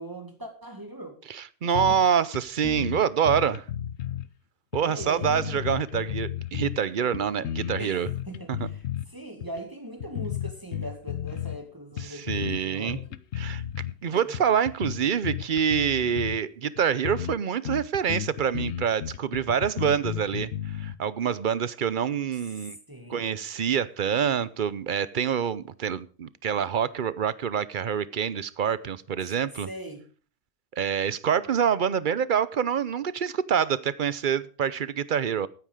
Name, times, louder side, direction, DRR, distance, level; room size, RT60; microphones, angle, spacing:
voice 1, 0.0-1.2 1.7-2.0 4.8-5.7 7.8-13.2 14.1-14.4 22.5-23.3 29.2-29.3 29.6-30.0, right 1 dB, 20° right, 2.1 m, -41 dB
voice 2, 1.3-3.6 4.7-8.1 8.5-8.6 12.0-13.0 13.4-13.6 14.0-22.8 23.1-29.7 30.7-35.5, right 8 dB, 50° right, 0.8 m, -26 dB
sound 1, 1.7-2.1 2.3-2.4 2.6-4.3 4.7-6.8 7.1-9.1 9.4-9.6 10.0-11.6 12.0-12.6 12.9-13.9 14.3-16.4 16.8-16.9 17.0-17.4 17.6-20.9, left 10 dB, 85° left, 1.0 m, -33 dB
14.0 x 9.5 x 4.9 m
omnidirectional pair, 1.1 m